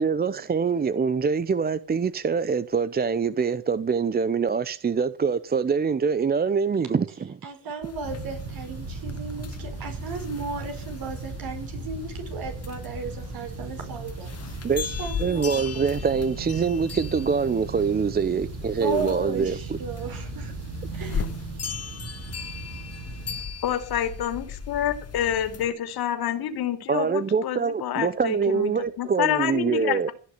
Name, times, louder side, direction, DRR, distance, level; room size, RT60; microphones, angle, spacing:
voice 1, 0.0-7.4 14.6-14.9 15.2-19.8 26.9-30.1, right 5 dB, 25° right, 0.7 m, -24 dB
voice 2, 7.4-15.7 18.8-20.5 20.9-21.3, right 4 dB, 60° right, 5.4 m, -35 dB
sound 1, 7.8-25.7, left 6 dB, 40° left, 2.1 m, -38 dB
sound 2, 8.0-23.4, right 4 dB, 75° right, 3.7 m, -38 dB
voice 3, 23.6-30.1, left 10 dB, 65° left, 3.2 m, -28 dB
16.5 x 6.4 x 9.7 m
cardioid pair, 95°, 40 cm